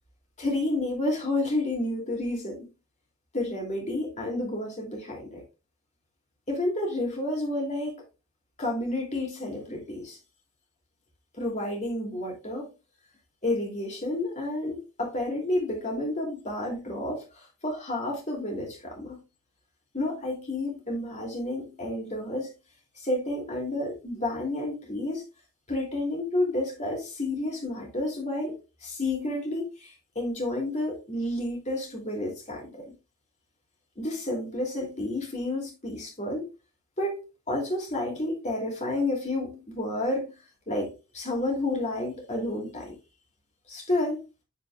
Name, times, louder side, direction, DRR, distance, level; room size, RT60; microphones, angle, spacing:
voice 1, 0.4-2.7 3.3-5.4 6.5-8.0 8.6-10.2 11.4-12.7 13.4-19.2 19.9-22.5 23.0-25.2 25.7-28.6 28.8-32.8 34.0-36.5 37.0-37.2 37.5-40.3 40.7-43.0 43.7-44.2, left 1 dB, 30° left, 2.9 m, -30 dB
10.5 x 5.0 x 2.4 m
head